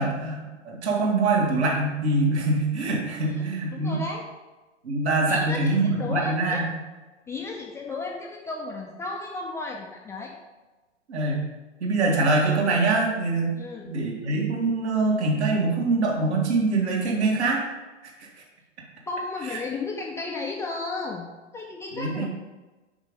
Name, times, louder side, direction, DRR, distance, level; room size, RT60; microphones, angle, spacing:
voice 1, 0.0-4.0 4.8-6.7 11.1-11.4 11.8-13.5 13.9-17.6 18.0-18.1 19.5-19.6 22.0-22.3, right 3 dB, 65° right, -2 dB, 2.4 m, -24 dB
voice 2, 3.3-4.3 5.3-6.6 7.3-10.3 13.6-14.0 19.1-21.3 21.5-22.3, left 3 dB, 10° left, -1 dB, 0.5 m, -34 dB
6.2 x 5.3 x 5.4 m, 1.2 s
figure-of-eight pair, 105°, 36 cm